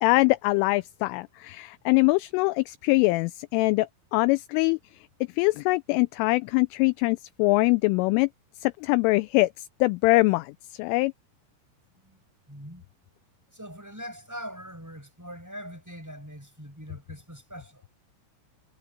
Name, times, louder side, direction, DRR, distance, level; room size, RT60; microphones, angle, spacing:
voice 1, 0.0-4.8 5.4-8.3 8.6-9.5 9.8-11.1, left 23 dB, 85° left, 3.0 m, -23 dB
voice 2, 12.5-12.8 13.5-17.8, equal, 5° right, 4.9 m, -42 dB
omnidirectional pair, 5.9 m